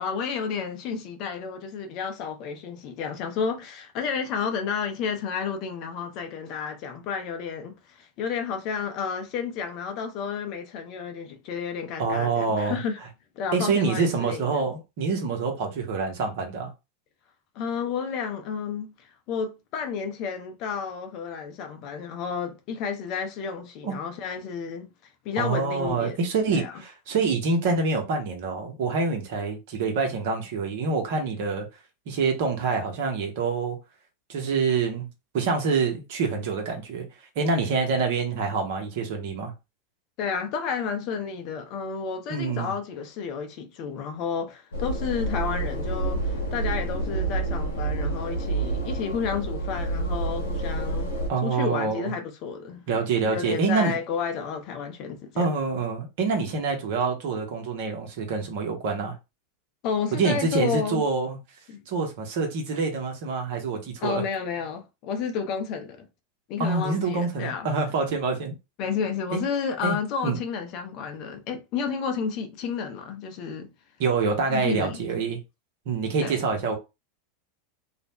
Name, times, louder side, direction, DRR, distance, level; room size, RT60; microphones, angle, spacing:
voice 1, 0.0-13.0 13.4-14.6 17.6-18.9 19.3-24.9 25.2-26.2 26.5-26.7 40.2-51.1 51.4-52.8 53.2-55.5 59.8-61.0 61.7-61.8 64.0-66.1 66.5-67.7 68.8-73.7 74.5-75.0 76.2-76.4, left 6 dB, 50° left, 0.6 m, -31 dB
voice 2, 12.0-12.8 13.5-16.7 23.8-24.0 25.4-31.7 32.1-33.8 34.3-35.1 35.3-37.0 37.4-39.5 42.3-42.7 51.3-52.1 52.9-54.0 55.4-59.2 60.1-61.4 61.9-64.2 66.6-68.5 69.3-69.4 69.8-70.0 70.2-70.4 74.0-75.4 75.9-76.8, right 4 dB, 60° right, 0.8 m, -26 dB
sound 1, 44.7-51.3, right 2 dB, 80° left, 0.9 m, -28 dB
2.4 x 2.1 x 2.9 m
hypercardioid pair, 90°, 0 cm